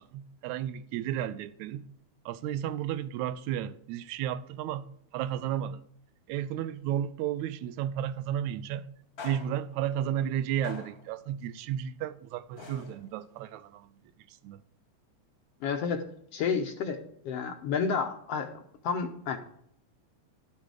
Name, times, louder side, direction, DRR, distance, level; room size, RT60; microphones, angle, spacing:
voice 1, 0.0-1.9 2.3-5.8 6.3-8.9 9.2-13.9 14.3-14.6, right 10 dB, 80° right, 1.9 m, -33 dB
sound 1, 7.9-8.1 9.2-9.8 10.6-11.2 12.6-13.3, left 5 dB, 40° left, 1.3 m, -45 dB
voice 2, 15.6-16.0 16.3-17.0 17.2-19.4, left 6 dB, 70° left, 1.6 m, -30 dB
11.5 x 6.6 x 4.7 m
omnidirectional pair, 3.4 m